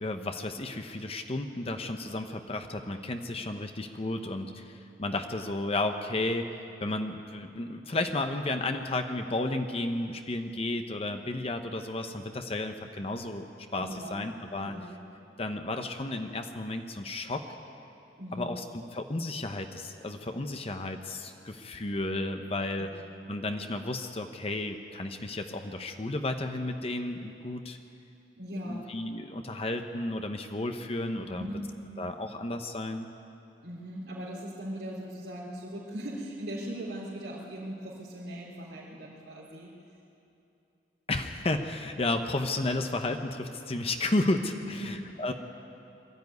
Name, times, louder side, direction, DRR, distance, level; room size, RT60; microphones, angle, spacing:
voice 1, 0.0-6.5 6.8-14.7 15.4-17.4 18.3-22.9 23.3-27.8 28.6-31.5 32.0-33.1 41.1-45.3, left 2 dB, 35° left, 6 dB, 0.9 m, -33 dB
voice 2, 13.8-14.2 14.6-14.9 18.2-18.5 22.8-22.9 28.4-28.8 31.2-31.7 33.6-39.7 44.6-45.0, equal, 80° right, -9 dB, 3.5 m, -39 dB
22.0 x 13.0 x 9.5 m, 2.7 s
head